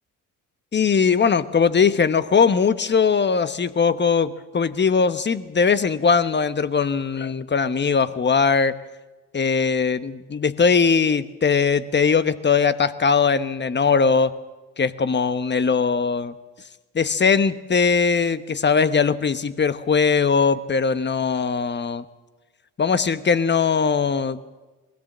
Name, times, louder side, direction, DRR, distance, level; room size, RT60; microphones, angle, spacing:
voice 1, 0.7-8.7 9.3-14.3 14.8-16.3 16.9-22.0 22.8-24.4, left 5 dB, 30° left, 13 dB, 1.1 m, -20 dB
21.0 x 16.5 x 7.4 m, 1.2 s
hypercardioid pair, 55°, 36 cm